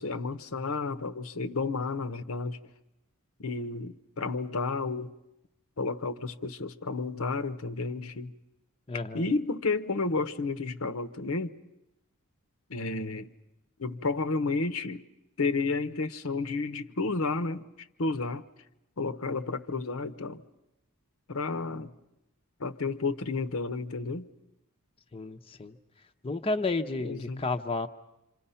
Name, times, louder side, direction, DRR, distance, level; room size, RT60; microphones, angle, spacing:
voice 1, 0.0-2.6 3.4-5.1 5.8-8.3 9.1-11.5 12.7-13.3 13.8-15.0 15.4-17.7 18.0-18.4 19.0-20.4 21.3-21.9 22.6-24.3 27.0-27.4, left 3 dB, 70° left, 0.9 m, -31 dB
voice 2, 8.9-9.3 25.1-25.8 26.2-27.9, left 3 dB, 25° left, 0.8 m, -31 dB
26.5 x 26.5 x 5.7 m
head